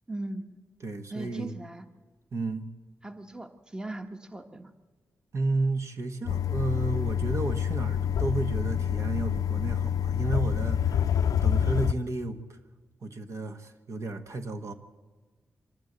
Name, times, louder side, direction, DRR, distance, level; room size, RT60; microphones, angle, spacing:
voice 1, 0.1-0.6 1.1-1.8 3.0-4.7, right 2 dB, 15° right, 7 dB, 1.1 m, -38 dB
voice 2, 0.8-1.5 2.3-2.6 5.3-11.1 11.4-12.6 13.0-14.7, right 2 dB, 55° right, 7 dB, 1.3 m, -32 dB
sound 1, 6.3-11.9, left 8 dB, 75° left, 0.6 m, -27 dB
25.5 x 12.5 x 8.0 m, 1.3 s
cardioid pair, 95°, 6 cm